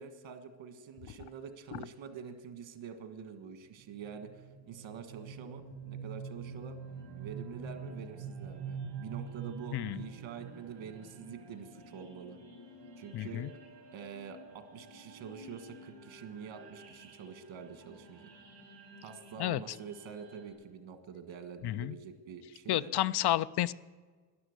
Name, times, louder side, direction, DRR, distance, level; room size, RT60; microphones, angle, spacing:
voice 1, 0.0-6.8 7.2-12.4 13.0-13.4 13.9-18.3 19.0-22.9, right 7 dB, 90° right, 9 dB, 1.7 m, -46 dB
sound 1, 3.8-20.5, right 5 dB, 55° right, 5.0 m, -47 dB
voice 2, 13.1-13.5 19.4-19.6 21.6-22.0 22.7-23.7, left 14 dB, 60° left, 18 dB, 0.5 m, -31 dB
12.5 x 11.0 x 8.1 m, 1.5 s
cardioid pair, 150°, 45 cm